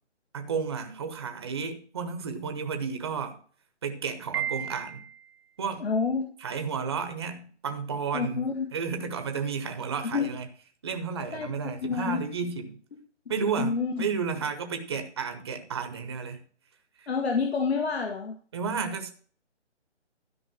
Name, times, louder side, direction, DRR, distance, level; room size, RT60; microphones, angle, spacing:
voice 1, 0.3-3.4 3.8-5.0 5.6-5.8 6.4-10.5 10.8-12.8 13.3-13.7 14.0-16.4 17.0-17.1 18.5-19.1, right 5 dB, 20° right, 1.0 m, -32 dB
Piano, 4.3-5.4, right 10 dB, 55° right, 0.8 m, -33 dB
voice 2, 5.8-6.2 8.1-8.7 10.0-10.3 11.3-11.5 11.8-12.2 13.6-14.1 17.1-18.4, left 5 dB, 60° left, 1.9 m, -28 dB
12.5 x 5.3 x 6.3 m
figure-of-eight pair, 160°, 36 cm